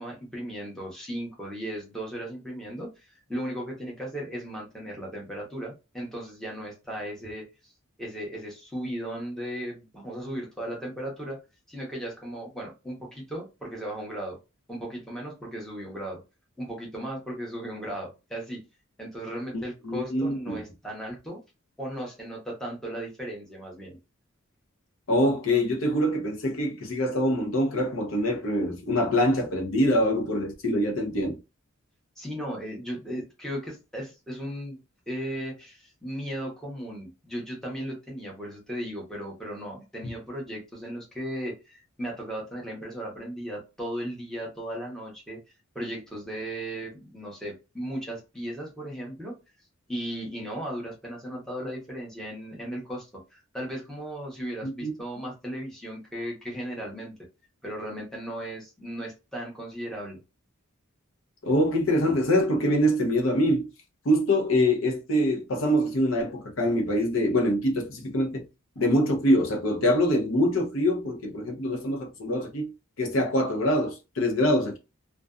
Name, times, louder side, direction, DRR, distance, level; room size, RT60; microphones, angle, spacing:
voice 1, 0.0-7.7 8.0-11.4 11.7-14.4 14.7-16.2 16.6-18.6 19.0-21.4 21.8-24.0 32.2-34.8 35.1-45.4 45.7-49.3 49.9-57.2 57.6-60.2, equal, ahead, 0.8 m, -36 dB
voice 2, 19.5-20.6 25.1-31.4 54.6-54.9 61.5-63.7 64.0-68.4 68.8-72.7 73.0-74.8, equal, 65° left, 0.7 m, -24 dB
2.5 x 2.2 x 2.3 m
head